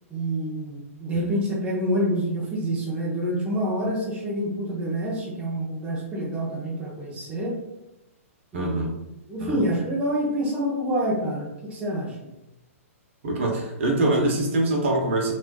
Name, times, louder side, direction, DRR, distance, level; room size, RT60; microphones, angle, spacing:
voice 1, 0.1-7.6 8.5-8.9 9.3-12.2, equal, 15° right, -4 dB, 0.7 m, -27 dB
voice 2, 8.5-8.9 9.4-9.6 13.2-15.3, right 2 dB, 55° right, 1 dB, 0.9 m, -24 dB
4.2 x 2.5 x 2.3 m, 0.95 s
hypercardioid pair, 150°, 8 cm